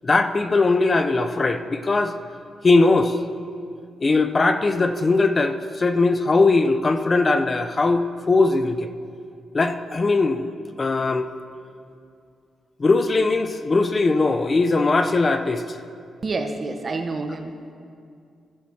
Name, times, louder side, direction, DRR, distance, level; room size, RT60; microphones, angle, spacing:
voice 1, 0.0-2.2 2.6-3.2 4.0-8.9 9.5-10.5 10.8-11.3 12.8-15.8, left 3 dB, 40° left, 8 dB, 0.6 m, -20 dB
voice 2, 16.2-17.7, right 3 dB, 45° right, 5 dB, 1.0 m, -28 dB
14.5 x 11.0 x 2.9 m, 2.3 s
supercardioid pair, 60°, 0 cm